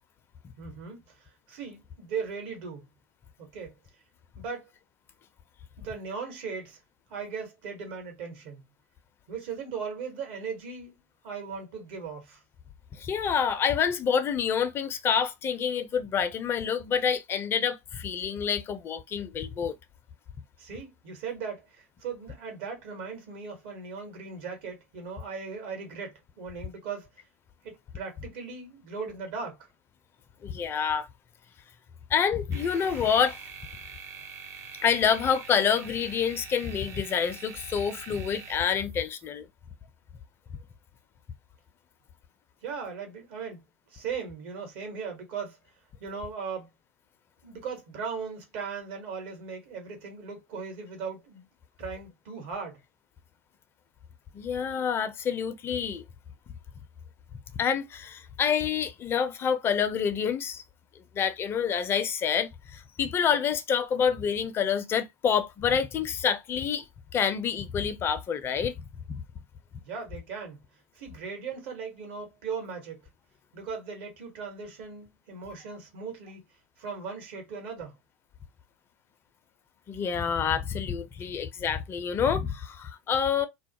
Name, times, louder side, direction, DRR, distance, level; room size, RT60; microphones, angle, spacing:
voice 1, 0.6-2.9 3.4-3.8 4.4-4.7 5.8-6.8 7.1-8.6 9.3-10.9 11.2-12.4 20.6-27.1 27.6-29.7 42.6-43.6 43.9-45.6 46.0-46.7 47.4-51.4 51.8-52.8 69.8-70.6 70.9-73.0 73.5-76.4 76.8-78.0, right 5 dB, 60° right, 1.1 m, -38 dB
voice 2, 12.9-19.7 30.4-31.1 32.1-33.4 34.8-39.5 54.3-56.0 57.6-60.6 61.0-66.8 67.1-69.2 79.9-83.5, left 7 dB, 30° left, 0.5 m, -27 dB
sound 1, 32.5-39.3, right 6 dB, 40° right, 0.6 m, -45 dB
2.3 x 2.0 x 2.8 m
figure-of-eight pair, 80°, 7 cm